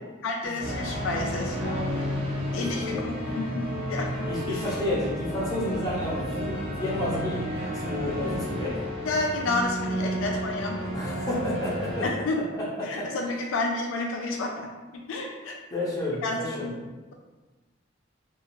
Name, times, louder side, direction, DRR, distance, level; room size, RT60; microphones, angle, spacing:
voice 1, 0.2-2.1 2.5-4.6 6.4-6.5 9.0-10.9 12.0-12.4 12.8-14.7 15.1-15.6 16.2-16.7, left 2 dB, 75° left, 1 dB, 0.4 m, -30 dB
sound 1, 0.6-12.1, equal, 25° right, 0.5 m, -32 dB
voice 2, 2.6-3.0 4.3-7.5 7.7-8.8 10.9-12.1 12.5-13.0 15.7-16.7, left 1 dB, 20° left, -7 dB, 0.7 m, -31 dB
2.6 x 2.3 x 2.9 m, 1.2 s
head